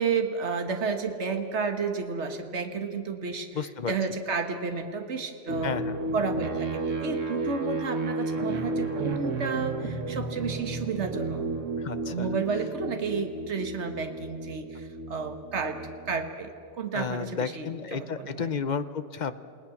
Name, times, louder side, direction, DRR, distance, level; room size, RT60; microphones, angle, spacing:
voice 1, 0.0-5.8 6.1-11.4 12.0-15.8 16.1-18.5, right 5 dB, 65° right, 6 dB, 1.7 m, -31 dB
voice 2, 3.5-3.9 5.6-6.0 11.8-12.3 16.9-19.3, left 6 dB, 45° left, 12 dB, 0.8 m, -32 dB
sound 1, 5.5-16.4, right 3 dB, 85° right, 1.9 m, -33 dB
29.0 x 18.0 x 7.2 m, 2.4 s
omnidirectional pair, 1.3 m